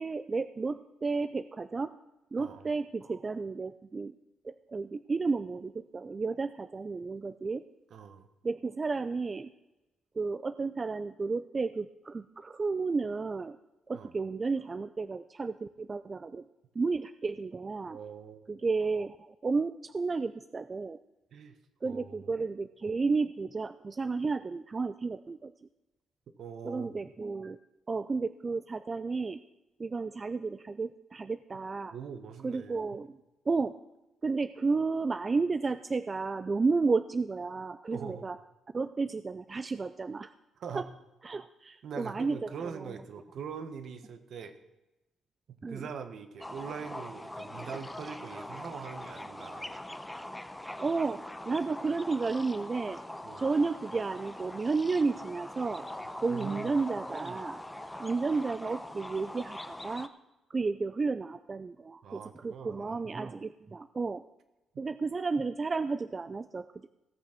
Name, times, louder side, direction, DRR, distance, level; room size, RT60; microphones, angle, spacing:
voice 1, 0.0-1.9 2.3-4.1 4.4-7.6 8.4-9.5 10.2-13.6 13.9-16.5 16.8-18.0 18.5-21.0 21.8-25.5 26.6-27.6 27.9-29.4 29.8-31.9 32.4-33.2 33.5-33.7 34.2-38.4 38.7-40.3 40.8-40.9 41.2-42.9 45.6-45.9 50.8-53.0 53.4-55.9 56.2-57.6 58.0-60.1 60.5-64.2 64.8-66.9, right 4 dB, 30° right, 12 dB, 0.4 m, -32 dB
voice 2, 2.4-2.7 7.9-8.3 13.9-14.1 17.9-18.4 21.3-21.6 21.8-22.3 26.4-27.0 31.9-32.8 37.9-38.3 40.6-40.9 41.8-44.5 45.5-49.7 53.2-53.4 56.3-56.7 62.0-63.1, right 6 dB, 65° right, 9 dB, 1.4 m, -42 dB
sound 1, 46.4-60.1, left 1 dB, 10° left, 0.8 m, -42 dB
17.0 x 6.4 x 6.0 m, 0.98 s
cardioid pair, 90°, 0 cm